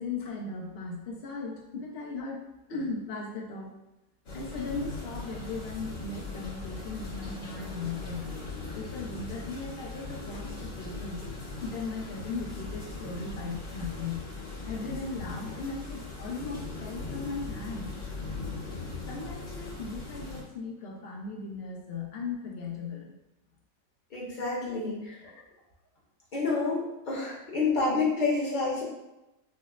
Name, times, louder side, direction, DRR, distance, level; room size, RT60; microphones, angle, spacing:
voice 1, 0.0-3.7 4.3-8.4 8.7-11.3 11.6-14.2 14.6-17.9 19.1-23.1, left 3 dB, 60° left, -1 dB, 0.6 m, -37 dB
sound 1, 4.2-20.4, left 3 dB, 80° left, 2.1 m, -39 dB
voice 2, 24.1-25.3 26.3-28.8, left 3 dB, 35° left, -5 dB, 0.9 m, -29 dB
6.0 x 2.0 x 2.5 m, 0.95 s
omnidirectional pair, 1.8 m